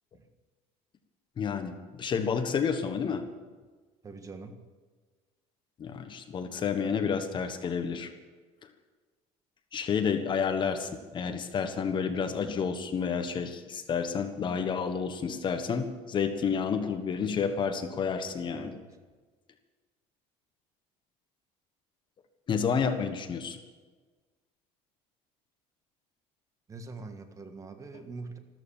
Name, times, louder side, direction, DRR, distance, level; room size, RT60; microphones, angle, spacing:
voice 1, 1.4-3.3 5.8-8.1 9.7-18.8 22.5-23.6, left 6 dB, 35° left, 9 dB, 1.3 m, -30 dB
voice 2, 4.0-4.6 18.5-18.8 26.7-28.4, right 3 dB, 25° right, 7 dB, 1.7 m, -43 dB
14.5 x 13.5 x 7.3 m, 1.4 s
cardioid pair, 125°, 14 cm